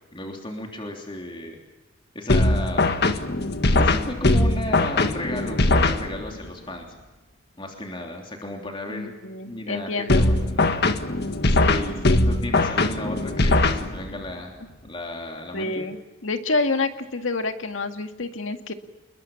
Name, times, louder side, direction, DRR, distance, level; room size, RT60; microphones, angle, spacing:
voice 1, 0.1-1.6 2.1-2.9 3.8-6.9 7.6-9.1 9.5-10.9 11.7-14.5 14.9-15.8, left 1 dB, 25° left, 1 dB, 3.3 m, -34 dB
sound 1, 2.3-6.5 10.1-14.3, left 2 dB, 55° left, 1.6 m, -21 dB
voice 2, 8.9-10.2 11.6-12.2 15.5-16.0 16.2-18.7, left 3 dB, 85° left, 6 dB, 2.1 m, -28 dB
28.5 x 21.5 x 7.3 m, 1.1 s
head